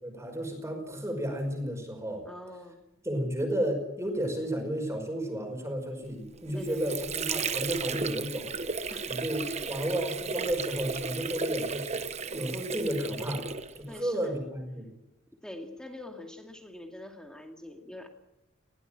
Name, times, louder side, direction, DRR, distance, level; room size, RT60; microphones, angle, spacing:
voice 1, 0.0-2.2 3.0-8.5 9.1-9.4 9.7-12.0 12.3-13.5 13.7-14.9, right 1 dB, 15° right, 3 dB, 5.3 m, -32 dB
voice 2, 2.3-2.8 6.5-7.0 8.9-9.1 9.4-9.7 13.9-14.4 15.4-18.1, left 1 dB, 5° left, 3 dB, 2.3 m, -44 dB
Water / Sink (filling or washing), 6.3-14.0, right 5 dB, 35° right, 1.1 m, -34 dB
20.5 x 17.5 x 8.9 m, 0.92 s
head